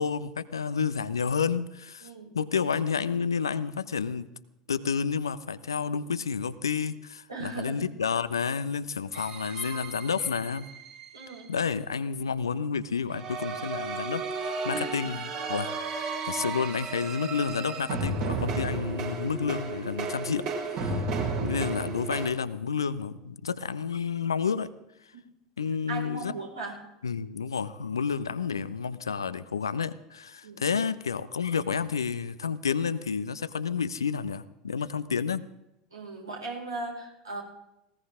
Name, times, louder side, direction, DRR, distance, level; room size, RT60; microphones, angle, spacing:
voice 1, 0.0-2.1 2.3-4.3 4.7-10.6 11.5-15.7 16.2-21.0 21.4-24.7 25.6-26.3 27.0-35.4, left 6 dB, 80° left, 14 dB, 0.8 m, -30 dB
voice 2, 2.0-2.4 7.3-7.8 11.1-11.5 14.7-15.1 25.9-26.8 30.4-30.6 35.9-37.4, right 3 dB, 80° right, -2 dB, 5.4 m, -38 dB
sound 1, 9.1-11.4 13.1-22.3, right 3 dB, 55° right, 5.0 m, -33 dB
20.0 x 18.0 x 3.7 m, 0.88 s
figure-of-eight pair, 75°, 2 cm